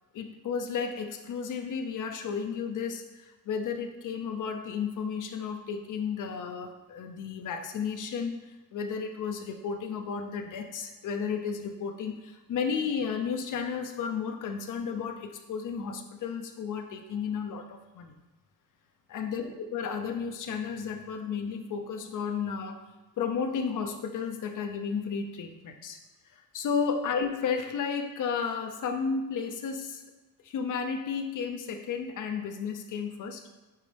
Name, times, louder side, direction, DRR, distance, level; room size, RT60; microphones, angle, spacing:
voice 1, 0.1-18.1 19.1-22.8 23.2-26.0 26.3-30.0 30.4-33.4, left 6 dB, 60° left, 5 dB, 0.7 m, -33 dB
9.0 x 4.1 x 3.4 m, 1.1 s
cardioid pair, 145°, 34 cm